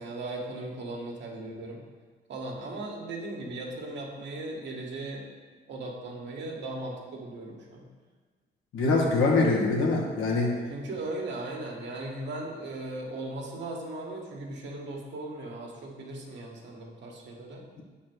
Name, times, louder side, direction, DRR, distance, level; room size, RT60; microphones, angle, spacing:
voice 1, 0.0-1.8 2.3-5.2 5.7-7.8 10.7-17.6, right 2 dB, 65° right, -1 dB, 1.6 m, -37 dB
voice 2, 8.7-10.5, left 3 dB, 80° left, -2 dB, 1.5 m, -24 dB
6.7 x 4.3 x 6.1 m, 1.4 s
cardioid pair, 90°, 20 cm